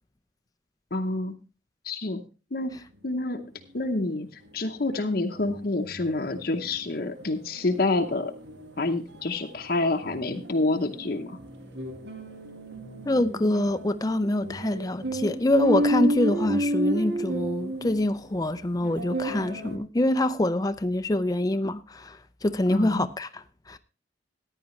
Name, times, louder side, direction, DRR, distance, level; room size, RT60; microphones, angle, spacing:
voice 1, 0.9-1.3 1.8-2.2 2.5-2.7 3.0-3.4 3.7-4.3 4.5-8.3 8.8-11.4 22.7-23.1, left 2 dB, 50° left, 0.8 m, -27 dB
sound 1, 4.4-4.5 4.9-5.0 5.3-19.8, right 1 dB, 65° right, 1.7 m, -32 dB
voice 2, 13.1-23.8, left 1 dB, 20° left, 0.5 m, -25 dB
14.5 x 9.9 x 3.2 m
head